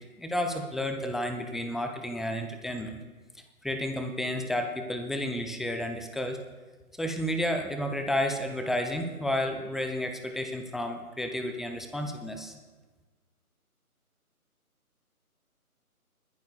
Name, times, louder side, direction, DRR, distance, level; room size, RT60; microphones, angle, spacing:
voice 1, 0.2-3.0 3.6-6.4 6.9-12.5, left 1 dB, ahead, 5 dB, 0.5 m, -31 dB
30.0 x 11.0 x 2.4 m, 1.3 s
figure-of-eight pair, 155°, 45 cm